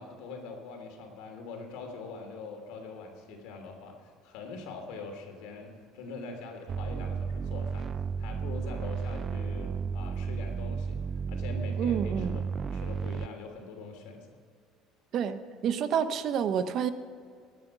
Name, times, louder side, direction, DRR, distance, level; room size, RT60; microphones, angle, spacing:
voice 1, 0.0-7.9 8.2-14.4, left 4 dB, 80° left, 3 dB, 3.1 m, -43 dB
sound 1, 6.7-13.3, right 6 dB, 30° right, 0.4 m, -33 dB
voice 2, 11.8-12.4 15.1-15.4 15.6-16.9, right 8 dB, 45° right, 11 dB, 0.9 m, -28 dB
20.5 x 9.4 x 6.1 m, 2.2 s
cardioid pair, 150°, 0 cm